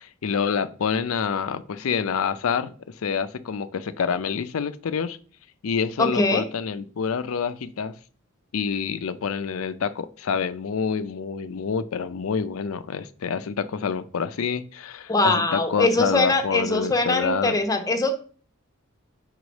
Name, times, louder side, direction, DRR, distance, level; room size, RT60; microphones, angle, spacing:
voice 1, 0.0-2.8 3.0-5.2 5.6-7.9 8.5-17.6, left 6 dB, 80° left, 0.5 m, -27 dB
voice 2, 6.0-6.4 15.1-18.1, left 2 dB, 15° left, 0.8 m, -22 dB
4.9 x 3.7 x 5.2 m
head